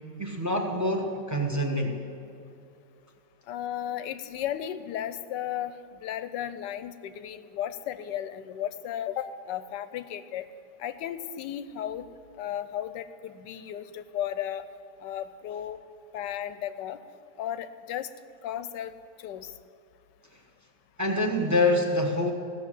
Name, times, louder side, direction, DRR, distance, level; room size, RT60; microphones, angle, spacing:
voice 1, 0.2-2.0 21.0-22.3, left 1 dB, 15° right, 2 dB, 0.8 m, -26 dB
voice 2, 3.5-5.7 6.0-10.5 10.8-12.1 12.4-14.6 15.0-15.8 16.1-17.0 17.4-18.1 18.4-18.9 19.2-19.5, left 10 dB, 75° left, 12 dB, 1.2 m, -34 dB
15.5 x 6.9 x 7.5 m, 2.6 s
omnidirectional pair, 2.0 m